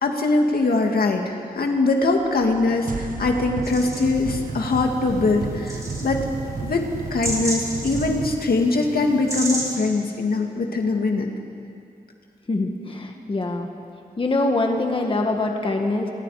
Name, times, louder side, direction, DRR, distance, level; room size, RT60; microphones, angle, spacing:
voice 1, 0.0-6.3 6.6-11.3, left 3 dB, 80° left, 2 dB, 2.3 m, -22 dB
sound 1, 2.2-8.4, right 5 dB, 65° right, 1.2 m, -33 dB
sound 2, 3.6-9.8, right 1 dB, 20° right, 4.0 m, -33 dB
voice 2, 12.5-13.7 14.2-16.1, left 2 dB, 35° left, 3 dB, 1.8 m, -24 dB
29.0 x 23.0 x 5.0 m, 2.5 s
wide cardioid pair, 165°, 15 cm